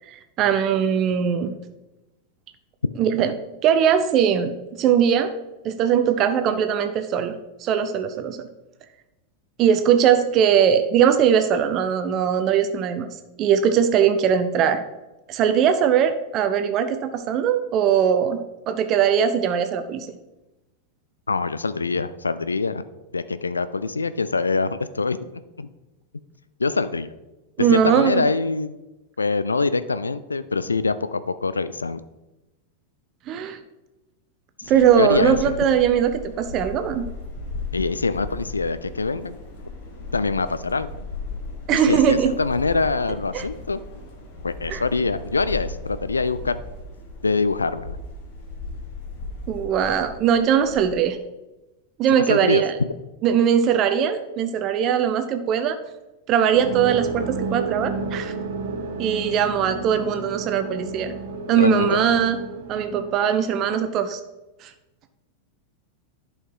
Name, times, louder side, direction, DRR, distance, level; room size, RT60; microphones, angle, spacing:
voice 1, 0.1-1.6 3.0-3.3 3.6-5.3 5.6-8.5 9.6-13.1 13.4-14.8 15.3-20.1 27.6-28.3 33.3-33.6 34.7-37.1 41.7-42.3 43.3-43.4 44.7-44.8 49.5-51.2 52.0-52.7 53.2-55.8 56.3-58.3 59.0-61.1 61.5-62.4 62.7-64.2 64.6-64.7, right 8 dB, 35° right, 9 dB, 0.7 m, -20 dB
voice 2, 21.3-22.8 23.1-25.2 25.6-25.7 26.6-27.1 27.6-28.8 29.2-32.0 34.6-35.6 37.7-39.4 40.1-40.9 41.9-43.8 44.4-46.6 47.2-48.0 52.1-52.6 61.6-62.0, left 4 dB, 75° left, 14 dB, 0.4 m, -24 dB
sound 1, 34.6-50.8, left 2 dB, 50° left, 2.0 m, -37 dB
sound 2, 56.5-63.9, right 4 dB, 55° right, 1.2 m, -32 dB
11.0 x 5.7 x 4.6 m, 1.0 s
figure-of-eight pair, 90°, 0 cm